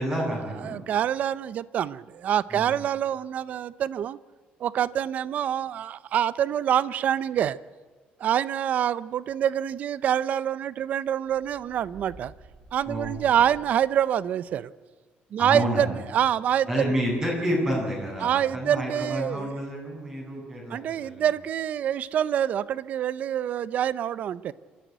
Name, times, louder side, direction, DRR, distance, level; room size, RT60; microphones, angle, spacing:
voice 1, 0.0-0.8 2.5-2.7 12.9-13.2 15.4-15.9 16.7-21.3, equal, 20° right, -1 dB, 7.6 m, -29 dB
voice 2, 0.6-4.2 4.6-7.6 8.2-12.3 12.7-14.7 15.3-16.9 18.2-19.5 20.7-24.5, right 10 dB, 50° right, 18 dB, 0.7 m, -26 dB
sound 1, 11.2-14.0, right 3 dB, 90° right, 6.9 m, -50 dB
26.5 x 14.5 x 9.4 m, 1.4 s
cardioid pair, 165°, 3 cm